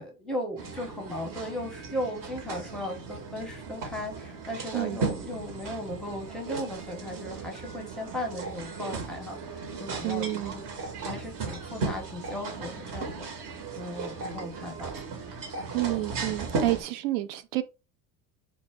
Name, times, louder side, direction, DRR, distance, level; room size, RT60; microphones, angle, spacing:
voice 1, 0.0-10.3 10.5-10.6 11.0-13.3 13.8-14.9, left 1 dB, ahead, 0.8 m, -36 dB
sound 1, 0.6-16.8, right 4 dB, 45° right, 1.0 m, -36 dB
voice 2, 10.0-10.5 15.7-17.6, right 17 dB, 60° right, 0.6 m, -29 dB
2.1 x 2.0 x 3.3 m
hypercardioid pair, 70°, 47 cm